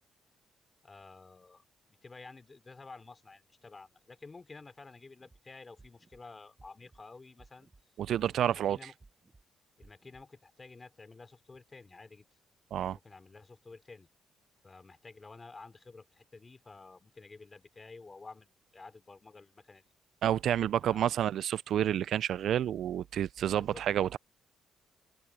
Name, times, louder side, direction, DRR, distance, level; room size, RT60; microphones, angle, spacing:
voice 1, 0.8-7.7 8.2-8.9 9.8-12.3 12.8-14.1 14.6-19.8 20.8-21.1 23.5-23.8, left 3 dB, 25° left, 3.1 m, -52 dB
sound 1, 5.2-5.4 5.8-6.2 6.6-7.0 7.4-7.8 8.2-8.6 9.0-9.4 9.8-10.2, right 3 dB, 20° right, 7.2 m, -59 dB
voice 2, 8.0-8.9 12.7-13.0 20.2-24.2, right 10 dB, 70° right, 0.3 m, -29 dB
open air
cardioid pair, 90°, 0 cm